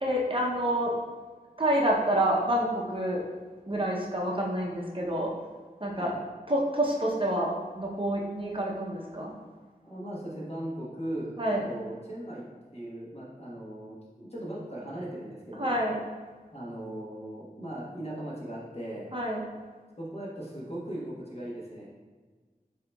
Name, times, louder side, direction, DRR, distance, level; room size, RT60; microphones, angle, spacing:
voice 1, 0.0-0.9 1.6-3.2 3.7-5.3 5.8-6.1 6.5-9.3 11.4-11.6 15.6-16.0 19.1-19.4, right 1 dB, 35° right, -3 dB, 0.7 m, -28 dB
voice 2, 9.8-12.4 12.7-15.8 16.5-19.1 20.0-21.9, right 1 dB, 40° left, -6 dB, 1.3 m, -38 dB
7.5 x 2.8 x 2.3 m, 1.4 s
wide cardioid pair, 45°, 15 cm